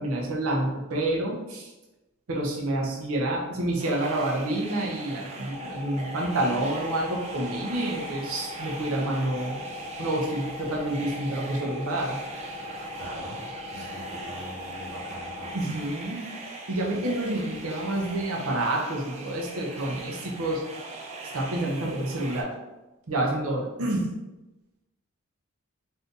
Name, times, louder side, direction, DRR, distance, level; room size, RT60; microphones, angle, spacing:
voice 1, 0.0-1.7 2.3-9.6 10.0-12.2 15.5-16.2 16.7-20.6 21.3-22.5 23.1-24.1, right 1 dB, 80° right, -2 dB, 0.6 m, -28 dB
sound 1, 3.8-22.4, right 3 dB, 30° right, 0.3 m, -41 dB
sound 2, 5.5-15.6, left 2 dB, 70° left, 0.8 m, -40 dB
voice 2, 13.0-13.4 13.7-15.7, equal, 15° right, -8 dB, 1.0 m, -42 dB
2.6 x 2.5 x 3.6 m, 1.0 s
head